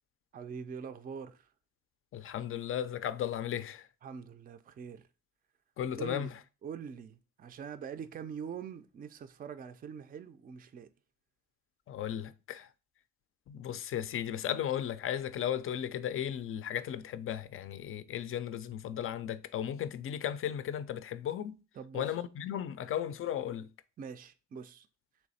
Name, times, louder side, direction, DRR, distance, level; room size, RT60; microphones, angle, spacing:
voice 1, 0.3-1.5 4.0-5.1 6.0-6.3 6.6-10.9 21.8-22.2 24.0-24.9, right 7 dB, 30° right, 0.4 m, -43 dB
voice 2, 2.1-3.9 5.8-6.3 11.9-12.7 13.5-21.6 21.9-23.7, left 10 dB, 45° left, 0.4 m, -35 dB
3.3 x 3.1 x 4.0 m
cardioid pair, 90°, 30 cm